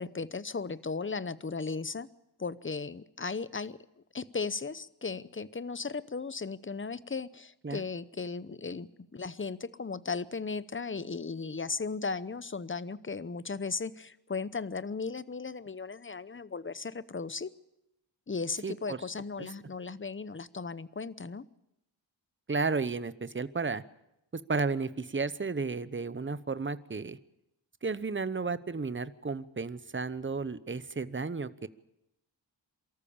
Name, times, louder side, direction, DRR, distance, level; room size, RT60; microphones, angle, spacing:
voice 1, 0.0-2.1 2.4-3.8 4.1-17.5 18.3-21.4, left 4 dB, 25° left, 17 dB, 0.8 m, -36 dB
voice 2, 18.6-19.0 19.4-19.5 22.5-23.8 24.3-27.2 27.8-31.7, right 4 dB, 25° right, 15 dB, 0.9 m, -33 dB
23.5 x 13.5 x 8.7 m, 0.88 s
wide cardioid pair, 50°, 46 cm